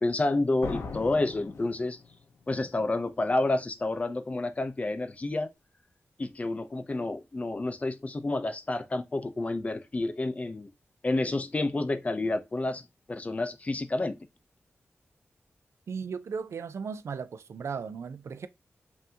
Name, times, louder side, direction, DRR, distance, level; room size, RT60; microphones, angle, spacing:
voice 1, 0.0-2.0 2.5-5.5 6.2-10.7 11.0-12.8 13.1-14.2, left 2 dB, 30° left, 0.5 m, -29 dB
sound 1, 0.6-2.4, left 4 dB, 80° left, 0.7 m, -39 dB
voice 2, 15.9-18.5, right 6 dB, 80° right, 0.4 m, -36 dB
5.5 x 2.7 x 2.7 m
wide cardioid pair, 120°, 5 cm